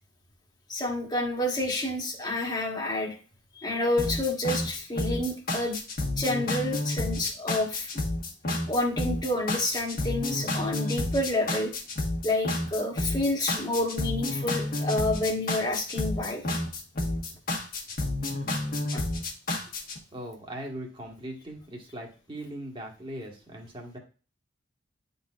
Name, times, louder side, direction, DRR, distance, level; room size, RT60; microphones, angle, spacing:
voice 1, 0.7-3.1 3.6-5.8 6.2-7.9 8.7-11.7 12.2-16.4 18.9-19.0, left 1 dB, 20° left, 0 dB, 1.4 m, -29 dB
sound 1, 4.0-20.0, left 2 dB, 50° left, 1.4 m, -30 dB
voice 2, 20.1-24.0, right 1 dB, 25° right, 0 dB, 1.5 m, -40 dB
10.0 x 4.0 x 2.4 m, 0.35 s
head